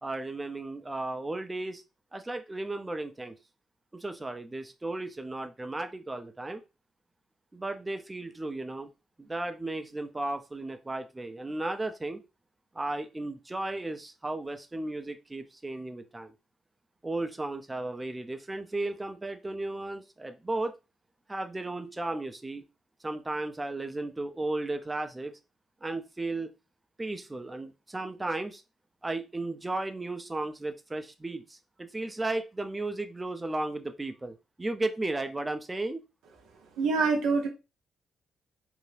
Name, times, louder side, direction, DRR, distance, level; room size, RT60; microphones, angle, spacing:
voice 1, 0.0-1.8 2.1-3.3 3.9-6.6 7.5-8.9 9.2-12.2 12.7-16.3 17.0-20.8 21.3-22.6 23.0-25.3 25.8-26.5 27.0-28.6 29.0-36.0, right 2 dB, 20° right, 0.4 m, -34 dB
voice 2, 36.8-37.5, right 4 dB, 85° right, 0.6 m, -25 dB
2.6 x 2.2 x 3.2 m
supercardioid pair, 65°, 0 cm